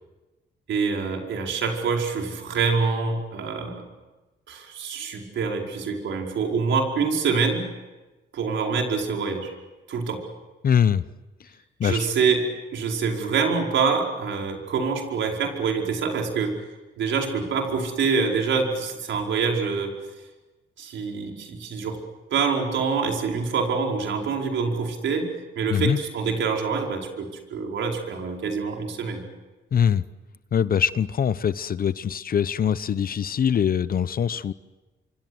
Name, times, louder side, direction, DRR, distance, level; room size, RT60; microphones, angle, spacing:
voice 1, 0.7-3.8 4.5-7.6 8.3-9.5 9.9-10.2 11.8-12.5 12.7-16.6 17.0-19.9 20.8-22.0 22.3-29.2, right 5 dB, 70° right, 2 dB, 4.9 m, -25 dB
voice 2, 10.6-11.0 11.8-12.1 25.7-26.0 29.7-30.0 30.5-34.5, left 8 dB, 45° left, 16 dB, 0.9 m, -23 dB
25.5 x 25.5 x 8.0 m, 1.1 s
cardioid pair, 90°, 20 cm